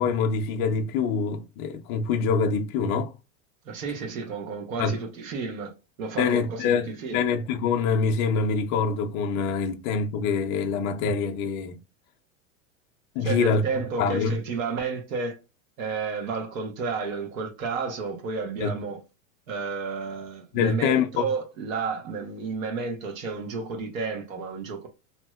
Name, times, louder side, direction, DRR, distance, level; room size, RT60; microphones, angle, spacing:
voice 1, 0.0-3.1 4.8-5.0 6.2-11.8 13.2-13.6 14.0-14.4 18.6-18.7 20.5-21.2, left 5 dB, 35° left, 0.5 m, -25 dB
voice 2, 3.6-5.7 6.0-7.2 13.2-15.4 15.8-19.0 19.5-24.9, right 4 dB, 75° right, 1.1 m, -31 dB
3.1 x 2.8 x 2.3 m
supercardioid pair, 130°, 41 cm